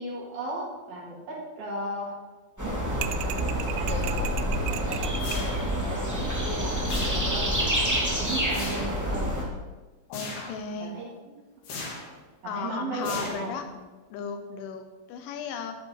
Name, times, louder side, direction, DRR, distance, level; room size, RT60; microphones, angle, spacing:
voice 1, 0.0-2.2 2.6-3.1 3.7-7.6 7.9-9.4 10.8-11.1 11.7-12.0 12.4-13.6, right 1 dB, 55° right, -3 dB, 4.3 m, -36 dB
sound 1, 2.6-9.4, equal, 25° right, 0.4 m, -28 dB
sound 2, 3.0-5.5, right 13 dB, 85° right, 2.5 m, -36 dB
sound 3, 5.2-5.9 6.9-7.5 8.5-9.0 10.1-10.6 11.6-12.2 13.0-13.7, left 3 dB, 55° left, 4.2 m, -38 dB
voice 2, 10.1-11.0 12.4-13.6 14.1-15.8, left 6 dB, 75° left, 7 dB, 3.4 m, -35 dB
14.5 x 11.0 x 4.8 m, 1.3 s
omnidirectional pair, 5.7 m